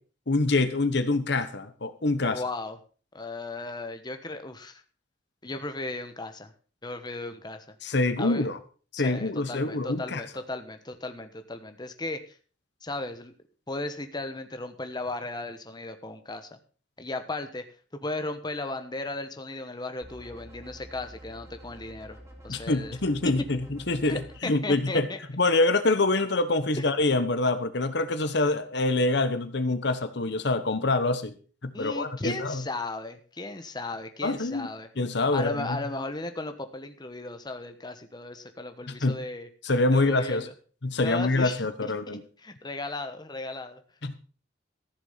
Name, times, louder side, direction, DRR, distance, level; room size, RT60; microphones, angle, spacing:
voice 1, 0.3-2.4 7.8-8.6 8.9-10.2 22.5-25.1 25.3-31.4 31.6-32.6 34.2-34.7 35.0-35.8 38.9-39.2 39.6-40.5 40.8-42.2 44.0-44.1, left 2 dB, 65° left, 11 dB, 1.2 m, -25 dB
voice 2, 2.3-2.8 3.1-4.8 5.4-6.5 6.8-7.7 8.2-8.5 9.0-12.4 12.8-13.3 13.7-16.6 17.0-17.6 18.0-22.2 22.4-23.0 23.2-23.3 24.0-25.2 26.8-26.9 31.7-34.9 35.3-39.5 39.9-40.5 41.0-43.8, left 2 dB, 25° left, 8 dB, 1.2 m, -36 dB
sound 1, 20.0-24.4, equal, 15° right, 3.4 m, -48 dB
14.5 x 7.0 x 5.7 m, 0.39 s
head